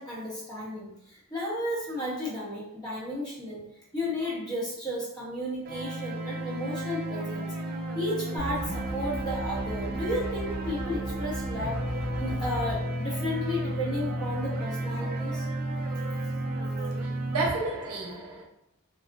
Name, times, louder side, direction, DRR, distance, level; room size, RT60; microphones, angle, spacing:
voice 1, 0.0-3.6 3.9-7.5 7.9-11.8 12.2-15.5, left 1 dB, 20° left, 0.8 m, -33 dB
sound 1, 5.6-17.5, right 1 dB, 40° right, 0.3 m, -33 dB
sound 2, 8.4-12.8, right 2 dB, 60° left, 1.2 m, -36 dB
voice 2, 17.0-18.4, right 3 dB, 80° right, 0.7 m, -31 dB
2.5 x 2.0 x 2.4 m
head